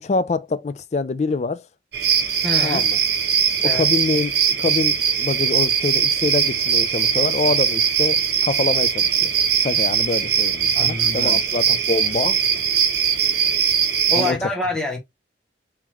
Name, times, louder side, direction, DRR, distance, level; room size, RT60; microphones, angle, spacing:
voice 1, 0.0-1.6 2.6-3.0 3.7-4.3 4.6-9.3 9.6-12.4 14.2-14.5, left 3 dB, 40° left, 0.4 m, -25 dB
sound 1, 1.9-14.3, right 7 dB, 65° right, 0.9 m, -20 dB
voice 2, 2.4-2.9 3.6-3.9 10.7-11.4 14.1-15.0, left 2 dB, 5° left, 1.1 m, -26 dB
3.8 x 3.0 x 2.9 m
head